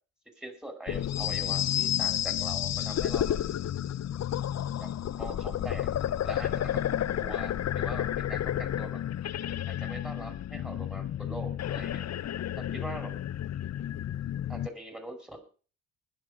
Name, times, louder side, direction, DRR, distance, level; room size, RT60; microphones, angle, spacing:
voice 1, 0.4-3.4 4.8-4.9 5.2-5.9 6.2-6.8 7.2-9.0 9.7-12.1 12.7-13.1 14.5-15.4, right 1 dB, ahead, 6 dB, 5.9 m, -42 dB
sound 1, 0.9-14.7, left 11 dB, 45° left, 0.8 m, -31 dB
20.5 x 7.5 x 5.3 m, 0.39 s
hypercardioid pair, 50°, 36 cm